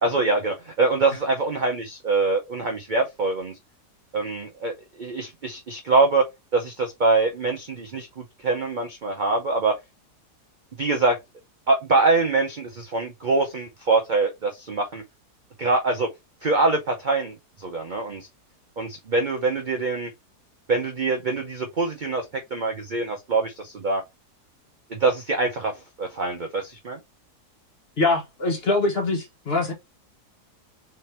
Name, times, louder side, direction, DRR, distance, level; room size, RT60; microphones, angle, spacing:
voice 1, 0.0-3.5 4.1-6.2 6.5-9.7 10.8-11.2 11.7-15.0 15.6-16.1 16.4-18.3 18.8-20.1 20.7-22.3 22.5-24.0 24.9-27.0, right 3 dB, 55° right, 0.5 m, -24 dB
voice 2, 28.0-29.7, left 3 dB, 40° left, 1.3 m, -23 dB
3.8 x 3.3 x 4.2 m
omnidirectional pair, 1.7 m